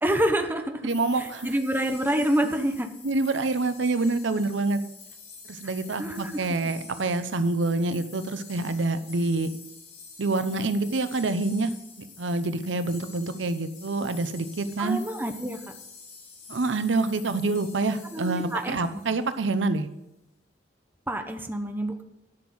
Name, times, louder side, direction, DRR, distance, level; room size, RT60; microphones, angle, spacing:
voice 1, 0.0-0.9 1.2-2.9 6.0-6.5 14.8-15.6 18.1-19.0 21.1-22.0, right 1 dB, 10° right, 5 dB, 1.0 m, -27 dB
voice 2, 0.8-1.5 3.0-4.8 5.5-9.5 10.2-11.7 12.2-15.0 16.5-19.9, right 3 dB, 85° right, 11 dB, 0.8 m, -26 dB
sound 1, 0.9-19.6, left 5 dB, 75° left, 5.0 m, -47 dB
12.0 x 6.3 x 7.8 m, 0.89 s
head